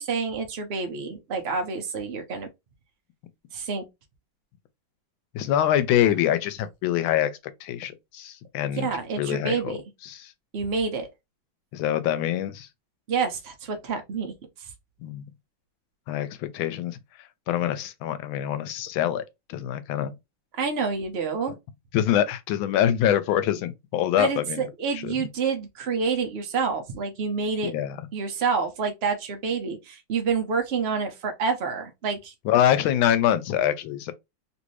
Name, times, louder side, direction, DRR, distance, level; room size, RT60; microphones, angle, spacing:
voice 1, 0.0-2.5 3.5-3.8 8.8-9.8 10.5-11.1 13.1-14.3 20.5-21.5 24.2-27.7 28.1-32.3, right 5 dB, 75° right, 0.5 m, -28 dB
voice 2, 5.3-7.3 7.6-8.9 9.2-9.8 10.0-10.3 11.7-12.7 15.0-15.2 16.1-17.0 17.5-20.1 21.9-24.7 24.9-25.1 27.6-28.0 32.4-34.1, left 11 dB, 90° left, 1.4 m, -25 dB
3.2 x 2.6 x 3.1 m
omnidirectional pair, 2.1 m